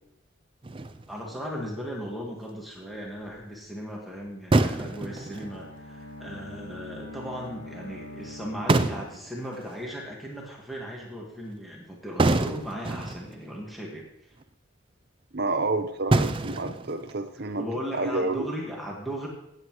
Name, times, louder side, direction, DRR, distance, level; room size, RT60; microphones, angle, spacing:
sound 1, 0.6-1.4 3.3-3.4 4.5-5.6 8.4-8.5 8.7-9.8 12.2-13.4 14.0-14.1 14.4-14.5 16.1-17.4, right 2 dB, 25° right, 0.4 m, -26 dB
voice 1, 1.1-14.0 17.6-19.3, equal, ahead, -3 dB, 1.6 m, -37 dB
Bowed string instrument, 4.8-9.5, left 1 dB, 65° left, 1.9 m, -44 dB
voice 2, 15.3-17.6 17.9-18.5, right 2 dB, 50° right, 7 dB, 0.8 m, -29 dB
16.0 x 8.0 x 3.1 m, 0.82 s
head